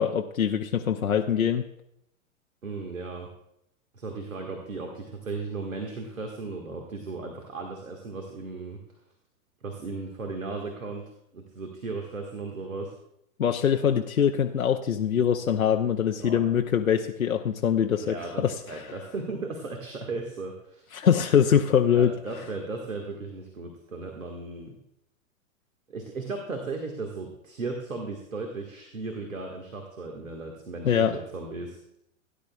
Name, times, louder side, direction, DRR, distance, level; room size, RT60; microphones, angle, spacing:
voice 1, 0.0-1.6 13.4-18.8 20.9-22.1 30.9-31.2, left 8 dB, 85° left, 4 dB, 0.7 m, -23 dB
voice 2, 2.6-3.3 3.9-8.8 9.6-12.9 16.2-16.5 18.0-20.9 21.9-24.8 25.9-31.8, right 3 dB, 75° right, 2 dB, 1.6 m, -36 dB
17.0 x 10.5 x 2.3 m, 0.79 s
figure-of-eight pair, 105°, 40 cm